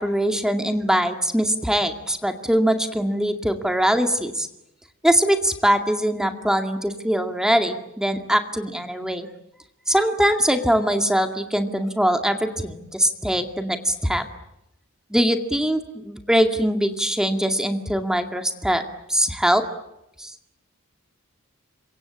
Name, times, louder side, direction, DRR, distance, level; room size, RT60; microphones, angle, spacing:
voice 1, 0.0-4.5 5.0-9.3 9.9-14.3 15.1-18.8 19.1-19.6 20.2-20.3, equal, 5° right, 6 dB, 2.1 m, -22 dB
27.5 x 24.0 x 8.6 m, 0.84 s
head